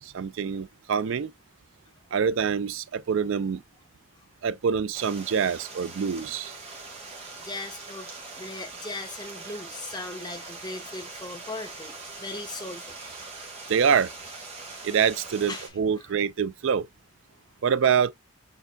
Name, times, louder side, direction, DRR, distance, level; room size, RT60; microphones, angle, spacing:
voice 1, 0.0-1.3 2.1-3.6 4.4-6.6 13.7-14.1 14.8-16.9 17.6-18.1, right 7 dB, 65° right, 0.4 m, -25 dB
Stream, 4.9-15.7, right 3 dB, 30° right, 1.4 m, -42 dB
voice 2, 7.4-13.1 15.5-15.7 16.0-16.3 17.3-17.6, left 2 dB, 20° left, 1.2 m, -39 dB
6.9 x 3.5 x 2.2 m
head